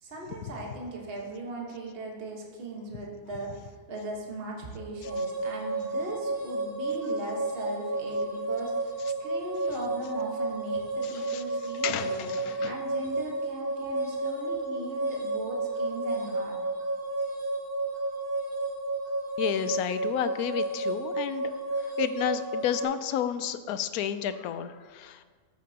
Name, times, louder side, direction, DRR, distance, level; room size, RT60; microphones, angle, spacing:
voice 1, 0.0-12.3 12.6-16.6, right 2 dB, 40° right, -1 dB, 1.5 m, -38 dB
sound 1, 5.0-22.8, right 2 dB, 75° right, 2.1 m, -31 dB
voice 2, 11.0-11.4 11.8-12.8 19.4-21.5 21.8-25.2, left 9 dB, 80° left, 12 dB, 1.0 m, -31 dB
13.5 x 7.4 x 2.8 m, 1.6 s
omnidirectional pair, 1.6 m